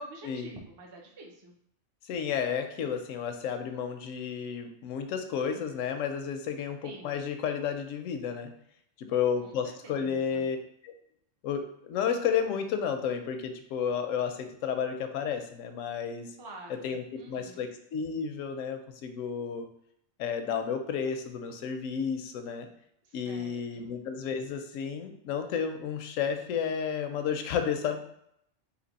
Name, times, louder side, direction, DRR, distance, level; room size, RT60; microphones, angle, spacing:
voice 1, 0.0-1.5 6.8-7.3 9.4-9.6 9.8-10.5 16.4-17.7 23.0-23.9, right 1 dB, 30° right, 1 dB, 0.4 m, -47 dB
voice 2, 2.1-8.5 9.0-10.6 10.8-10.9 11.4-16.3 16.7-19.7 20.2-22.7 23.1-28.0, left 7 dB, 90° left, 6 dB, 1.0 m, -32 dB
3.3 x 2.9 x 3.9 m, 0.73 s
omnidirectional pair, 1.3 m